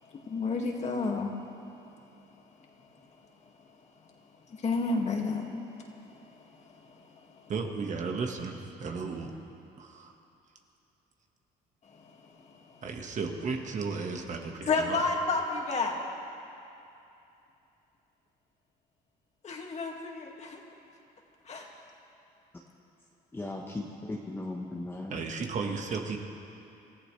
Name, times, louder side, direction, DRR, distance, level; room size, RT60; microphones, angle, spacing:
voice 1, 0.1-1.3 1.9-2.0 2.8-3.1 4.0-4.1 4.5-7.5 11.8-12.8 14.7-16.0 19.4-20.6 21.5-21.7, left 3 dB, 40° left, 0 dB, 2.2 m, -32 dB
voice 2, 7.5-9.3 9.8-10.1 12.8-15.0 25.1-26.2, right 4 dB, 45° right, 3 dB, 1.6 m, -34 dB
voice 3, 23.3-25.2, left 2 dB, 15° left, -2 dB, 1.2 m, -37 dB
27.5 x 14.5 x 3.4 m, 2.8 s
cardioid pair, 110°, 17 cm